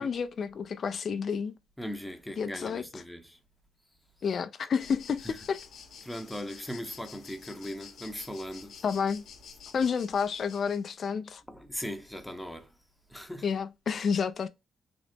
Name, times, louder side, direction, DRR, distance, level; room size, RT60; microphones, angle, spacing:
voice 1, 0.0-1.6 2.4-3.0 4.2-5.6 8.8-9.2 9.7-11.4 13.4-14.5, left 6 dB, 50° left, 0.4 m, -30 dB
voice 2, 1.8-3.4 5.2-5.4 6.0-8.8 11.5-12.7 13.1-13.5, equal, 5° left, 0.7 m, -39 dB
sound 1, 4.8-10.9, left 6 dB, 70° left, 0.9 m, -50 dB
3.8 x 2.0 x 3.4 m
cardioid pair, 90°, 0 cm